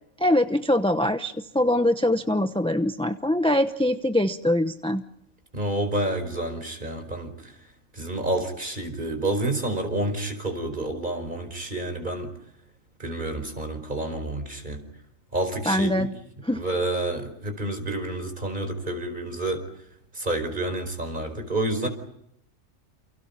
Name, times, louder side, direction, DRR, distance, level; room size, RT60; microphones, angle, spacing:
voice 1, 0.2-5.0 15.7-16.1 16.4-16.6, left 1 dB, 5° left, 8 dB, 0.8 m, -23 dB
voice 2, 5.5-7.5 7.9-12.3 13.0-14.8 15.3-16.1 16.5-19.6 20.1-21.9, right 1 dB, 35° right, 7 dB, 5.0 m, -29 dB
29.5 x 29.0 x 5.6 m, 0.75 s
omnidirectional pair, 1.4 m